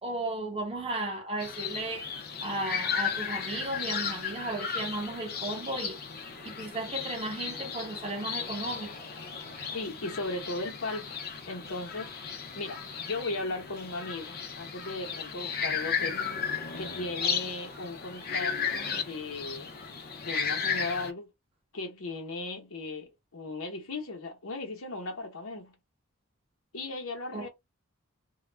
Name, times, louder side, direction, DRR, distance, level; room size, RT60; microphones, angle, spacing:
voice 1, 0.0-2.1 2.4-6.0 6.4-8.9 27.3-27.5, right 2 dB, 30° right, 0.9 m, -35 dB
sound 1, 1.4-21.1, left 6 dB, 50° left, 0.5 m, -35 dB
voice 2, 9.7-12.1 12.5-16.3 16.8-19.7 20.2-21.3 21.7-25.8 26.7-27.5, left 2 dB, 80° left, 0.9 m, -37 dB
2.3 x 2.1 x 3.2 m
head